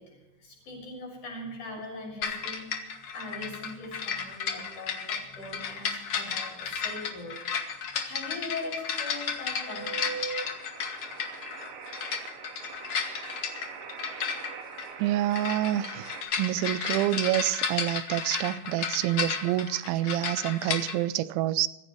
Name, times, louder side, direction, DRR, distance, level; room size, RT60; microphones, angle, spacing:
voice 1, 0.0-7.4 7.9-10.1 12.4-12.5 12.9-13.0, left 2 dB, 45° left, 7.8 m, -41 dB
sound 1, 2.2-21.0, left 6 dB, 75° left, 1.3 m, -33 dB
sound 2, 9.6-16.2, right 6 dB, 60° right, 2.7 m, -41 dB
voice 2, 15.0-16.1 16.4-21.7, right 14 dB, 85° right, 3.0 m, -27 dB
24.0 x 15.5 x 3.2 m
omnidirectional pair, 5.2 m